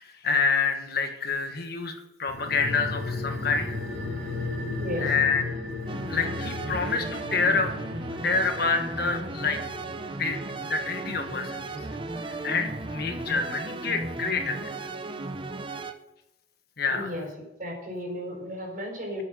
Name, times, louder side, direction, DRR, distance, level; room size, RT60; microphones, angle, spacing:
voice 1, 0.0-1.9 2.2-3.8 5.0-5.5 6.1-7.7 8.2-9.6 10.2-11.6 12.3-14.7 16.8-17.1, left 4 dB, 55° left, 5 dB, 1.4 m, -27 dB
sound 1, 2.3-13.1 13.4-13.5, left 2 dB, 70° right, 4.0 m, -36 dB
voice 2, 4.8-5.1 16.9-17.3 17.6-19.2, left 1 dB, 45° right, 0 dB, 4.9 m, -34 dB
sound 2, 5.9-15.9, right 2 dB, 25° right, 0.8 m, -35 dB
9.5 x 7.2 x 7.5 m, 0.94 s
head